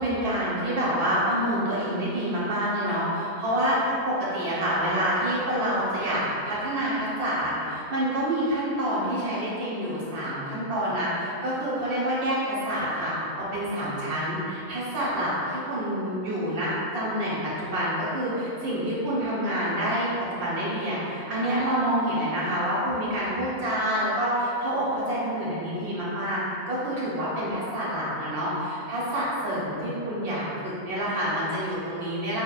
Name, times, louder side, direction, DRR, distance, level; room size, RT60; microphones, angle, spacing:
voice 1, 0.0-32.4, equal, 80° right, -8 dB, 1.4 m, -27 dB
5.2 x 2.1 x 2.2 m, 2.6 s
omnidirectional pair, 1.6 m